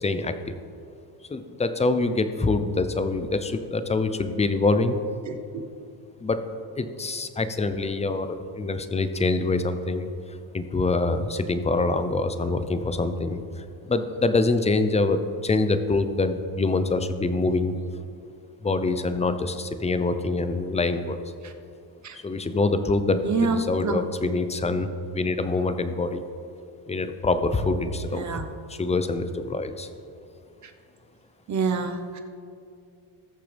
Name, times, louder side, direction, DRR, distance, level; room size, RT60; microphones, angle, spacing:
voice 1, 0.0-0.6 1.3-5.0 6.2-6.4 6.8-10.1 10.5-17.7 18.6-21.2 22.1-26.2 26.9-28.4 28.7-29.9, left 3 dB, 15° left, 10 dB, 0.6 m, -25 dB
voice 2, 5.3-5.6 21.4-21.5 22.0-22.2 23.2-24.0 28.1-28.4 31.5-32.2, right 4 dB, 35° right, 6 dB, 1.1 m, -27 dB
19.5 x 6.7 x 3.5 m, 2.5 s
cardioid pair, 105°, 49 cm